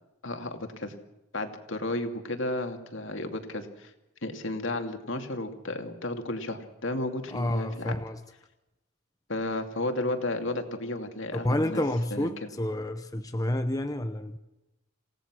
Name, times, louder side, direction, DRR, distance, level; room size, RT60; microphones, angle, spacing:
voice 1, 0.2-1.0 1.3-3.9 4.2-7.9 9.3-11.8 12.1-12.5, left 2 dB, 60° left, 2.6 m, -33 dB
voice 2, 7.3-8.2 11.3-14.4, left 1 dB, 15° left, 0.8 m, -29 dB
28.0 x 17.5 x 6.3 m
head